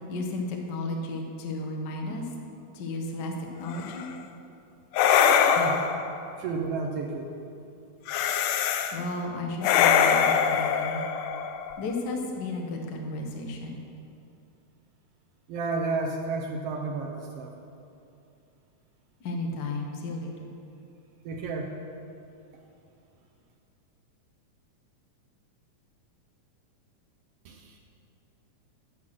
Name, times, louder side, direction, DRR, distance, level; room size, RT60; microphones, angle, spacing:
voice 1, 0.1-2.3 2.7-4.1 8.9-11.0 11.8-13.8 19.2-20.6, left 2 dB, 75° left, 1 dB, 1.0 m, -33 dB
sound 1, 3.7-4.1 4.9-6.2 8.1-9.0 9.6-11.9, left 7 dB, 90° left, 1.5 m, -23 dB
voice 2, 6.4-7.3 15.5-17.5 21.2-21.7 27.4-27.8, right 3 dB, 80° right, 1 dB, 1.3 m, -31 dB
11.5 x 5.8 x 6.2 m, 2.6 s
omnidirectional pair, 3.6 m